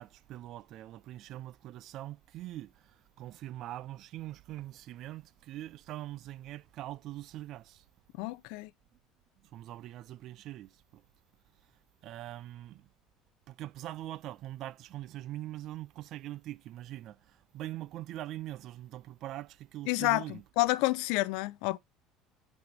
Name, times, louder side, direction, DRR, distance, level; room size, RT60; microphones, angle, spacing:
voice 1, 0.0-2.7 3.2-7.8 9.5-10.7 12.0-12.9 13.5-17.2 17.5-20.4, right 14 dB, 40° right, 0.3 m, -42 dB
voice 2, 8.2-8.7 19.9-21.8, left 20 dB, 65° left, 0.4 m, -29 dB
9.6 x 4.2 x 3.2 m
cardioid pair, 175°, 0 cm